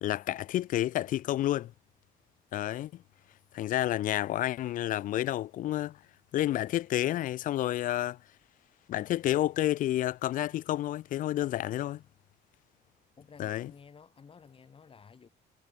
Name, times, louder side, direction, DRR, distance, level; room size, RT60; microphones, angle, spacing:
voice 1, 0.0-1.7 2.5-3.0 3.5-6.0 6.3-8.2 8.9-12.0 13.4-13.7, left 13 dB, 55° left, 0.4 m, -30 dB
voice 2, 13.2-15.3, left 6 dB, 30° left, 3.4 m, -53 dB
cardioid pair, 110°, 17 cm